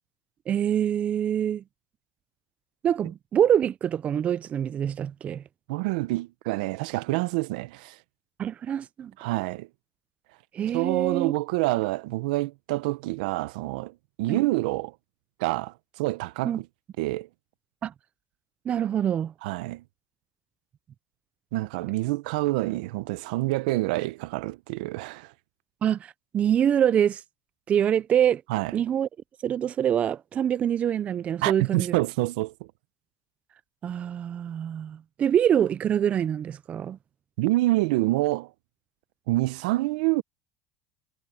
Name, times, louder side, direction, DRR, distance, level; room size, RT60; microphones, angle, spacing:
voice 1, 0.5-1.6 2.8-5.4 8.4-9.1 10.5-11.3 14.3-14.4 16.4-16.6 17.8-17.9 18.7-19.3 25.8-27.2 27.7-28.4 28.7-29.1 29.4-31.9 33.8-37.0, right 9 dB, 30° right, 0.4 m, -25 dB
voice 2, 5.7-8.0 9.2-9.7 10.7-14.9 15.4-16.7 17.0-17.3 19.4-19.8 21.5-25.3 28.5-28.8 31.4-32.5 37.4-38.5 39.3-40.2, right 20 dB, 80° right, 0.9 m, -27 dB
supercardioid pair, 130°, 4 cm